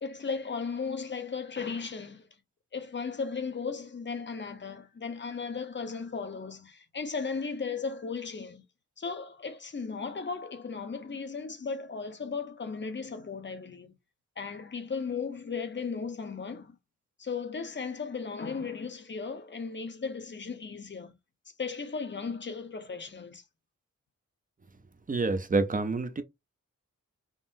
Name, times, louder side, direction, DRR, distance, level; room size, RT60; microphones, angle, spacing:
voice 1, 0.0-2.3 2.7-8.6 9.0-13.9 14.4-16.8 17.2-21.1 21.6-23.4, left 5 dB, 35° left, 0.7 m, -36 dB
voice 2, 25.1-26.2, right 3 dB, 25° right, 0.5 m, -27 dB
3.7 x 2.1 x 2.5 m
cardioid pair, 70°, 31 cm